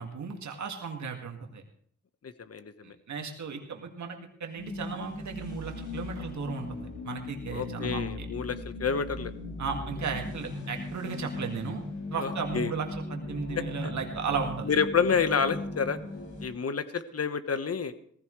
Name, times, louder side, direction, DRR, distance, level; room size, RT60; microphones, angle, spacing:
voice 1, 0.0-1.6 2.8-8.3 9.6-11.8 12.1-14.7, right 5 dB, 75° right, 3 dB, 2.1 m, -35 dB
voice 2, 2.2-2.9 7.5-9.3 12.2-12.7 13.8-13.9 14.6-16.0 16.4-17.9, left 6 dB, 55° left, 11 dB, 1.3 m, -29 dB
sound 1, 4.6-16.5, left 2 dB, 90° left, 3.3 m, -38 dB
18.5 x 15.5 x 3.2 m, 0.64 s
cardioid pair, 50°, 29 cm